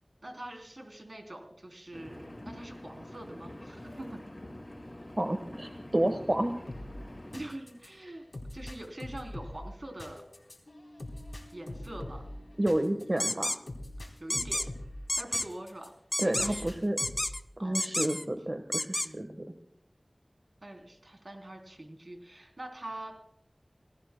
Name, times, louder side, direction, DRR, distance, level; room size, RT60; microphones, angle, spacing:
voice 1, 0.2-4.2 7.3-8.2 8.5-10.2 11.5-12.3 14.2-14.7 15.2-15.9 16.2-16.7 17.6-18.4 19.0-19.6 20.6-23.1, right 1 dB, 65° right, 3 dB, 3.4 m, -44 dB
Engine, 1.9-7.4, left 1 dB, 45° left, 6.2 m, -46 dB
voice 2, 5.2-6.5 12.6-13.6 16.2-17.0 17.6-19.3, right 1 dB, 40° right, 6 dB, 1.3 m, -30 dB
sound 1, 6.7-15.9 16.3-17.4, left 1 dB, 70° left, 3.7 m, -44 dB
sound 2, 13.2-13.6 14.3-14.7 15.1-15.5 16.1-16.6 17.0-17.4 17.7-18.2 18.7-19.1, left 1 dB, 30° left, 0.6 m, -30 dB
29.0 x 19.0 x 2.2 m, 0.72 s
wide cardioid pair, 45°, 0 cm